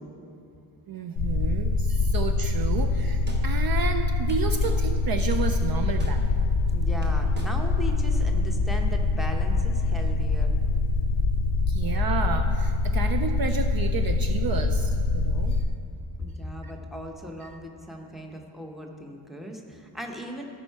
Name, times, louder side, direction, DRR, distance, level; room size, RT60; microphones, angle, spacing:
voice 1, 0.9-6.5 11.7-15.6 16.6-16.7 17.4-17.5, right 6 dB, 50° right, 6 dB, 0.5 m, -32 dB
sound 1, 1.2-15.7, left 3 dB, 50° left, 0.6 m, -24 dB
sound 2, 2.6-2.7 3.3-3.4 4.3-4.8 5.3-5.4 6.0-6.1 6.7-6.8 7.0-7.5 7.9-8.0, equal, 20° right, 1.1 m, -41 dB
voice 2, 6.7-10.5 16.2-20.4, equal, ahead, 2 dB, 0.8 m, -38 dB
16.5 x 5.5 x 4.6 m, 2.6 s
wide cardioid pair, 140°, 47 cm